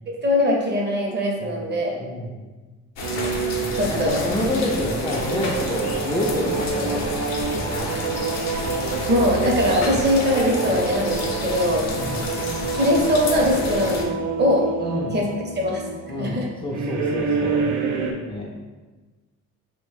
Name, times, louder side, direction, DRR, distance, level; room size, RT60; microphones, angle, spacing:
voice 1, 0.1-2.0 3.7-4.3 9.1-11.9 12.7-14.7 15.1-15.3 15.6-15.8 16.2-16.5, left 1 dB, 35° right, -1 dB, 0.7 m, -21 dB
voice 2, 2.0-2.5 3.9-7.1 7.5-7.9 11.9-12.2 14.8-15.2 16.1-17.6 18.3-18.5, left 1 dB, 20° left, -4 dB, 0.4 m, -28 dB
sound 1, 3.0-14.0, left 2 dB, 60° left, 0.6 m, -30 dB
sound 2, 3.0-18.1, right 4 dB, 90° right, 0.5 m, -28 dB
3.0 x 2.1 x 3.2 m, 1.3 s
cardioid pair, 90°, 30 cm